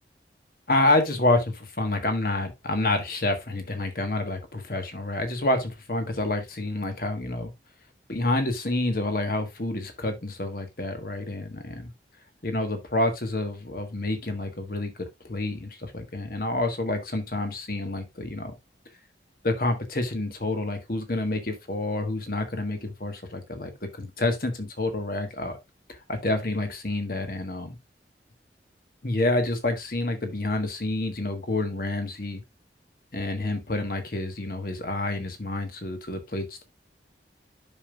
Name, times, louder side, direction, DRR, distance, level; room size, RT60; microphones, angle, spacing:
voice 1, 0.7-7.5 8.1-11.9 12.4-18.5 19.4-25.6 25.9-27.7 29.0-32.4 33.1-36.6, left 2 dB, 55° left, 1.5 m, -28 dB
11.0 x 5.4 x 2.4 m
head